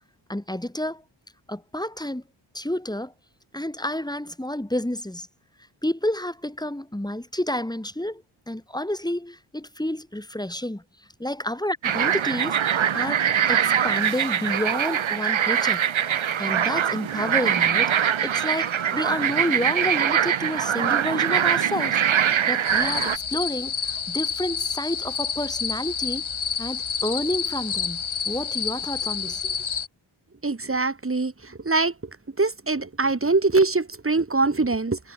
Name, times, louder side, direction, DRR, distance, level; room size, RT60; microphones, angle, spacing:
voice 1, 0.3-1.0 1.5-2.2 2.5-3.1 3.5-5.3 5.8-10.8 11.2-15.8 16.4-22.0 22.5-26.2 26.6-29.5, left 1 dB, 10° left, 4.9 m, -30 dB
sound 1, 11.8-23.2, right 8 dB, 70° right, 1.6 m, -23 dB
sound 2, 22.6-29.9, left 7 dB, 75° left, 4.6 m, -29 dB
voice 2, 30.4-31.3 31.6-31.9 32.4-35.0, right 3 dB, 25° right, 2.8 m, -22 dB
wide cardioid pair, 110°, 48 cm